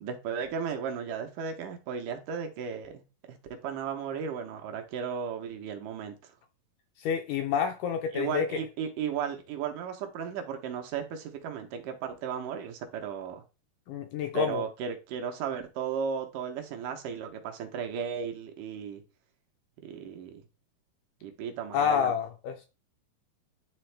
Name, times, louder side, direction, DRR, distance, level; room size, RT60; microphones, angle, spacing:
voice 1, 0.0-3.0 3.6-6.2 8.1-13.4 14.3-19.0 19.8-20.4 21.2-22.1, right 7 dB, 75° right, 2.2 m, -35 dB
voice 2, 7.0-8.6 13.9-14.6 21.7-22.7, left 8 dB, 80° left, 1.9 m, -28 dB
9.9 x 3.4 x 3.3 m
omnidirectional pair, 4.0 m